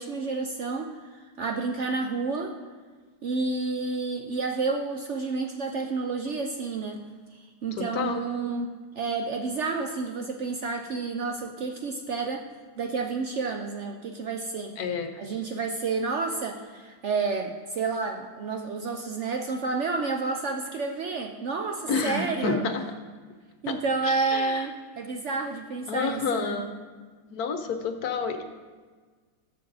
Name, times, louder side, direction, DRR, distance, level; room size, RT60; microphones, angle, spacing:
voice 1, 0.0-2.5 3.2-7.0 7.3-12.5 12.8-14.7 15.2-22.6 23.6-26.6, right 4 dB, 65° right, 4 dB, 0.7 m, -30 dB
voice 2, 7.7-8.2 14.8-15.2 21.9-22.8 23.7-23.8 24.0-24.7 25.9-26.8 27.3-28.4, left 5 dB, 65° left, 7 dB, 1.2 m, -29 dB
14.0 x 6.9 x 4.0 m, 1.5 s
omnidirectional pair, 1.9 m